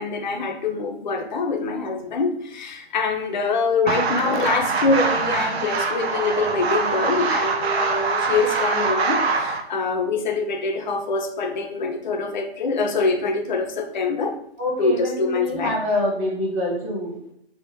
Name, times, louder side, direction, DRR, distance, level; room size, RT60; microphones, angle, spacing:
voice 1, 0.0-14.3 14.8-15.7, left 4 dB, 45° left, 5 dB, 0.4 m, -24 dB
sound 1, 3.9-9.6, right 4 dB, 70° right, 0.5 m, -24 dB
voice 2, 14.6-17.3, left 1 dB, 15° right, -4 dB, 0.6 m, -26 dB
3.4 x 2.0 x 2.6 m, 0.73 s
figure-of-eight pair, 140°, 32 cm